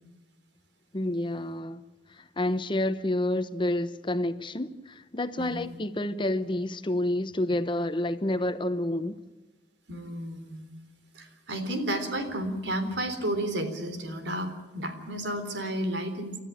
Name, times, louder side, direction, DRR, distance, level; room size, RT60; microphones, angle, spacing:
voice 1, 0.9-1.8 2.1-9.2, left 1 dB, 30° left, 0.9 m, -29 dB
voice 2, 5.4-5.7 9.9-10.6 11.1-16.4, right 1 dB, 80° right, 3.7 m, -32 dB
29.5 x 13.5 x 9.0 m
head